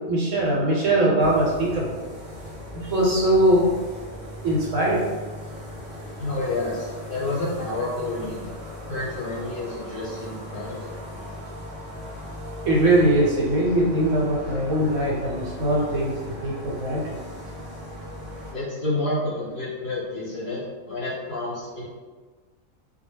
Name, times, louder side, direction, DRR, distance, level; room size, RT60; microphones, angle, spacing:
voice 1, 0.1-2.0 2.7-3.7 4.4-5.0 12.6-17.0, right 1 dB, 75° right, -4 dB, 1.0 m, -21 dB
sound 1, 1.2-18.5, equal, 40° right, 0.8 m, -38 dB
voice 2, 6.2-8.4 8.9-10.9 18.5-21.9, left 2 dB, 50° left, -8 dB, 0.7 m, -29 dB
2.2 x 2.0 x 3.3 m, 1.4 s
omnidirectional pair, 1.4 m